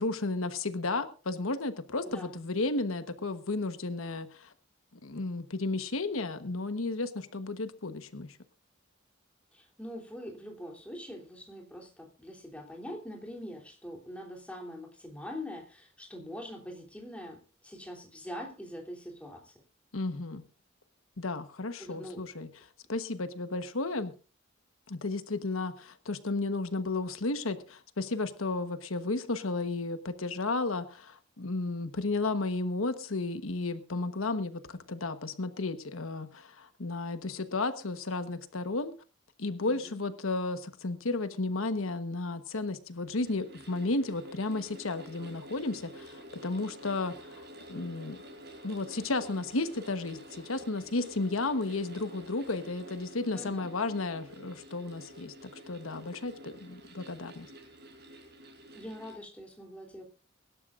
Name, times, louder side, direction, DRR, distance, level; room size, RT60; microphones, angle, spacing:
voice 1, 0.0-4.5 5.0-8.4 19.9-20.4 21.2-22.5 22.9-24.1 24.9-38.9 39.4-48.2 48.6-57.5, left 3 dB, 85° left, 10 dB, 1.2 m, -33 dB
voice 2, 2.0-2.4 9.5-19.5 21.8-22.2 39.6-40.0 53.3-53.7 58.7-60.0, left 1 dB, 5° left, 0 dB, 3.1 m, -43 dB
sound 1, 42.9-59.2, equal, 50° right, 4.9 m, -49 dB
24.0 x 12.0 x 2.5 m, 0.35 s
head